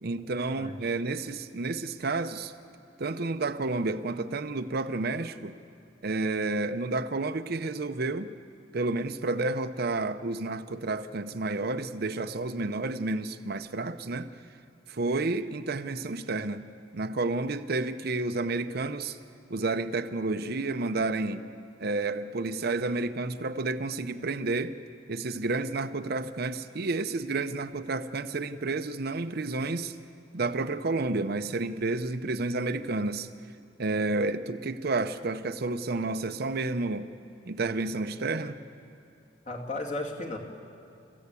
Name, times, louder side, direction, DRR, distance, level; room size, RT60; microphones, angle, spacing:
voice 1, 0.0-2.5 3.0-5.6 6.0-8.3 8.7-14.3 14.9-16.6 16.9-19.2 19.5-21.5 21.8-24.8 25.1-29.9 30.3-33.3 33.8-37.1 37.5-38.6, right 3 dB, 55° right, 9 dB, 0.7 m, -30 dB
voice 2, 39.5-40.4, left 2 dB, 35° left, 1 dB, 2.5 m, -34 dB
29.0 x 15.0 x 8.4 m, 2.6 s
head